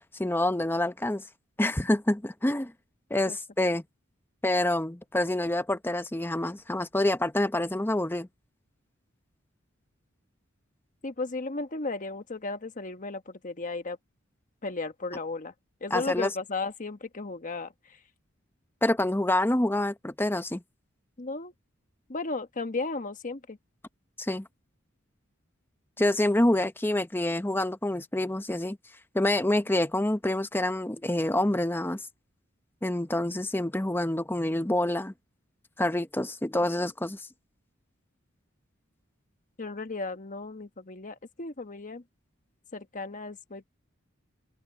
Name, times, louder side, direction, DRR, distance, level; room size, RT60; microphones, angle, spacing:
voice 1, 0.2-1.2 1.6-2.7 3.1-3.8 4.4-8.3 15.9-16.3 18.8-20.6 24.2-24.5 26.0-28.8 29.1-32.0 32.8-35.1 35.8-37.2, left 1 dB, 10° left, 0.8 m, -27 dB
voice 2, 11.0-14.0 14.6-15.5 15.8-18.0 21.2-21.5 22.1-23.6 39.6-42.0 42.7-43.7, left 3 dB, 40° left, 1.3 m, -35 dB
open air
head